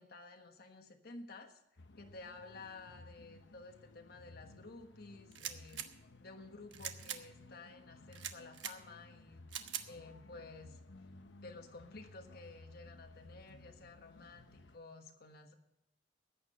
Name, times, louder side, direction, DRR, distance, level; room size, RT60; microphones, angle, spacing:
voice 1, 0.0-1.6 2.0-5.8 6.2-10.8 11.4-15.5, left 3 dB, 55° left, 4 dB, 1.3 m, -53 dB
sound 1, 1.8-14.8, left 2 dB, 80° left, 0.9 m, -57 dB
sound 2, 5.3-5.9 6.7-7.2 8.1-8.7 9.5-9.9, right 10 dB, 90° right, 1.2 m, -42 dB
14.5 x 9.9 x 5.5 m, 0.86 s
head